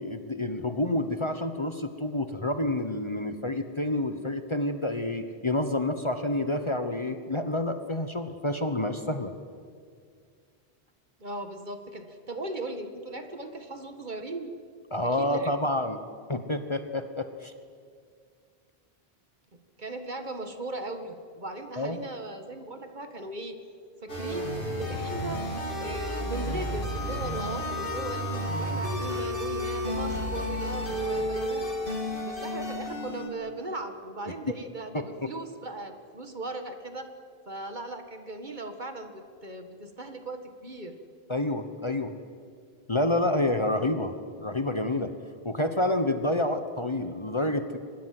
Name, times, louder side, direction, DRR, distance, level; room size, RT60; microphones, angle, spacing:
voice 1, 0.0-9.3 14.9-16.0 16.3-17.5 21.8-22.0 35.2-35.3 41.3-42.1 42.9-45.1 45.4-47.8, left 1 dB, 30° left, 8 dB, 1.1 m, -28 dB
voice 2, 11.2-14.5 15.1-15.5 19.8-23.6 24.0-25.4 25.8-28.3 28.6-31.7 32.2-37.1 37.5-41.0, right 2 dB, 45° right, 7 dB, 1.9 m, -38 dB
sound 1, 24.1-33.3, equal, 55° left, 3.5 m, -31 dB
25.0 x 20.5 x 7.8 m, 2.1 s
omnidirectional pair, 1.1 m